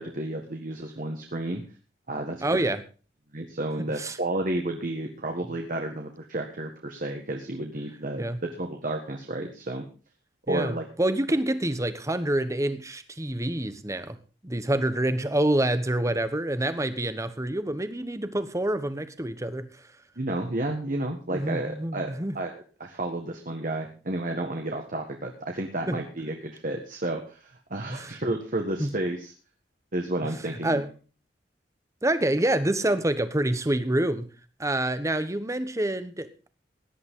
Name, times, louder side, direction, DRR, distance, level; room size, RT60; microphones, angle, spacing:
voice 1, 0.0-1.6 2.1-2.7 3.3-9.9 10.5-10.9 20.2-29.3 29.9-30.8, right 1 dB, 50° right, 3 dB, 1.7 m, -31 dB
voice 2, 2.4-2.8 3.8-4.2 8.2-8.4 10.5-14.2 14.4-19.7 21.3-22.3 25.9-26.0 27.9-28.2 28.8-28.9 30.6-30.9 32.0-34.3 34.6-36.5, right 1 dB, 15° right, 11 dB, 1.2 m, -27 dB
17.5 x 11.0 x 3.8 m, 0.35 s
head